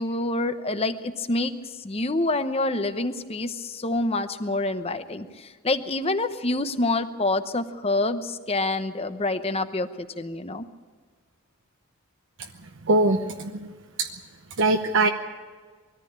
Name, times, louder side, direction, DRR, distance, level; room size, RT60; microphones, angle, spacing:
voice 1, 0.0-1.5 1.8-10.7, left 2 dB, 25° left, 10 dB, 0.9 m, -27 dB
voice 2, 12.9-13.7 14.0-14.1 14.6-15.1, right 2 dB, 55° right, 5 dB, 0.8 m, -21 dB
21.0 x 14.0 x 8.8 m, 1.5 s
head